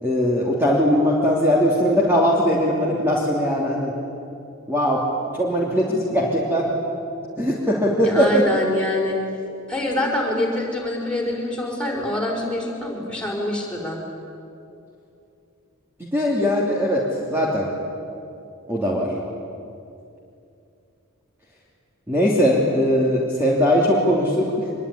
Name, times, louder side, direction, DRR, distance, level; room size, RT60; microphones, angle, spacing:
voice 1, 0.0-3.9 4.7-5.0 5.3-6.7 7.4-8.4 16.0-17.0 17.3-17.7 18.7-19.1 22.1-24.7, equal, 10° right, -4 dB, 3.1 m, -20 dB
voice 2, 8.0-9.2 9.7-14.0, left 1 dB, 5° left, -2 dB, 5.3 m, -25 dB
25.0 x 22.5 x 10.0 m, 2.6 s
head